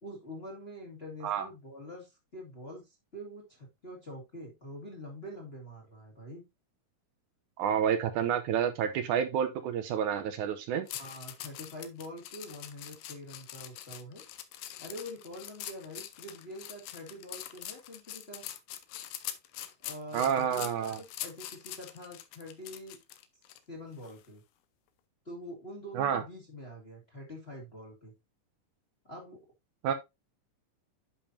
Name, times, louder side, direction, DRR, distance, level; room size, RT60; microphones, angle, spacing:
voice 1, 0.0-6.4 10.9-14.2 14.8-18.4 19.8-23.0 23.7-24.4 25.2-28.1 29.0-29.4, equal, 25° left, 1.7 m, -45 dB
voice 2, 7.6-10.9 20.1-21.0 26.0-26.2 29.8-29.9, right 8 dB, 75° right, 2.1 m, -29 dB
sound 1, 10.9-23.6 24.0-24.3, left 12 dB, 85° left, 2.5 m, -43 dB
10.5 x 5.4 x 2.7 m
omnidirectional pair, 3.8 m